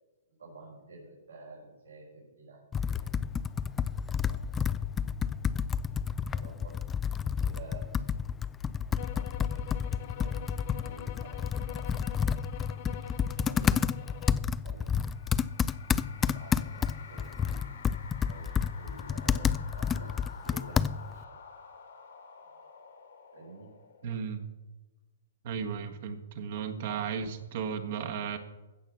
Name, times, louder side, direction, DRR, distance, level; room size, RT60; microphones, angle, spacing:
voice 1, 0.4-2.6 2.9-3.1 4.3-4.5 5.2-5.5 6.3-6.8 7.2-7.8 8.8-10.5 10.8-12.0 12.8-14.3 14.6-14.9 16.2-17.6 18.3-20.7 21.1-21.4 23.3-23.7 26.9-27.1, right 2 dB, 85° right, -5 dB, 4.5 m, -51 dB
Computer keyboard, 2.7-21.2, left 7 dB, 15° left, 0.4 m, -30 dB
sound 1, 9.0-14.5, left 12 dB, 50° left, 0.8 m, -45 dB
sound 2, 14.8-24.4, left 6 dB, 70° left, 2.6 m, -50 dB
voice 2, 24.0-24.4 25.4-28.4, right 7 dB, 55° right, 5 dB, 1.6 m, -35 dB
15.5 x 6.1 x 7.1 m, 1.1 s
hypercardioid pair, 125°, 0 cm